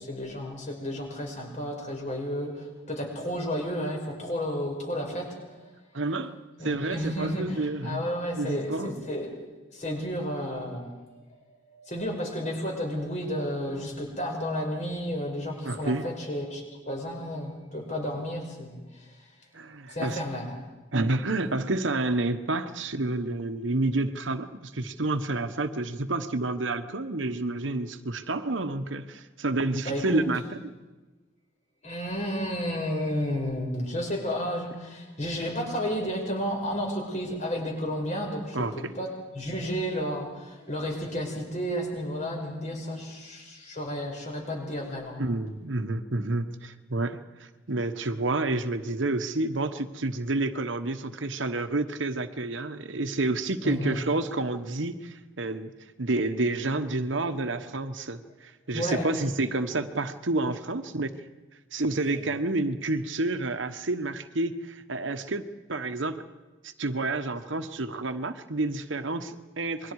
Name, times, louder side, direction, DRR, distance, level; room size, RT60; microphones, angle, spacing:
voice 1, 0.0-5.7 6.6-9.4 9.7-11.2 11.7-19.0 19.9-20.5 29.9-30.2 31.8-45.3 53.6-54.0 58.7-59.1, equal, 40° left, 1 dB, 5.5 m, -32 dB
voice 2, 5.9-6.4 6.6-8.1 8.3-8.9 15.6-16.1 19.5-20.2 20.9-30.6 38.5-38.9 45.2-55.7 56.0-61.1 61.7-66.2 66.6-69.9, right 2 dB, 75° right, 8 dB, 1.2 m, -29 dB
28.0 x 22.0 x 4.9 m, 1.2 s
head